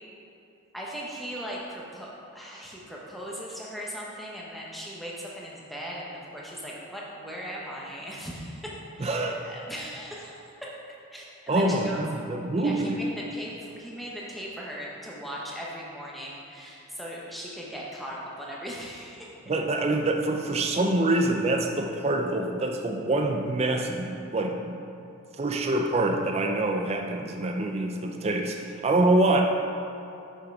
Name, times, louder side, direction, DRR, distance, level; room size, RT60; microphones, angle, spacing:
voice 1, 0.7-10.7 11.1-12.0 12.6-19.3, equal, ahead, -5 dB, 0.8 m, -38 dB
voice 2, 9.0-9.5 11.5-13.0 19.5-24.8 25.4-29.4, right 2 dB, 30° right, 3 dB, 0.4 m, -25 dB
6.2 x 5.7 x 4.6 m, 2.8 s
head